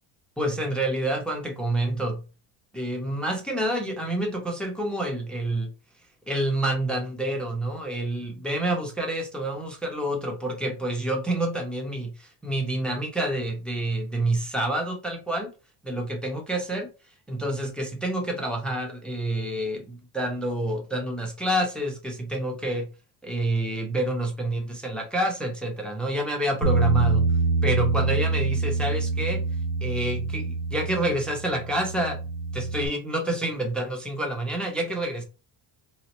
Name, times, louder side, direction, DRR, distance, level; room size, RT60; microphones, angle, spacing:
voice 1, 0.4-2.2 2.7-5.7 6.3-15.5 15.8-16.9 17.3-22.9 23.2-27.3 27.6-29.4 29.8-32.2 32.5-35.2, right 1 dB, ahead, 0.3 m, -28 dB
Bass guitar, 26.6-32.9, right 3 dB, 65° right, 0.8 m, -26 dB
3.9 x 2.0 x 2.8 m
cardioid pair, 145°, 45 cm